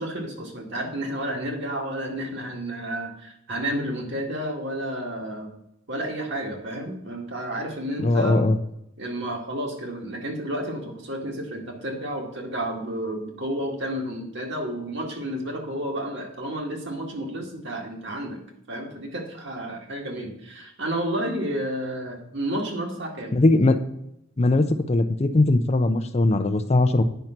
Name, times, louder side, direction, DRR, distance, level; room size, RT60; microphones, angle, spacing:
voice 1, 0.0-5.5 5.9-8.4 9.0-18.4 18.7-23.3, right 1 dB, 60° right, 1 dB, 2.0 m, -31 dB
voice 2, 8.0-8.6 23.3-23.8 24.4-27.0, left 2 dB, 30° left, 10 dB, 0.5 m, -20 dB
9.1 x 5.5 x 5.9 m, 0.77 s
head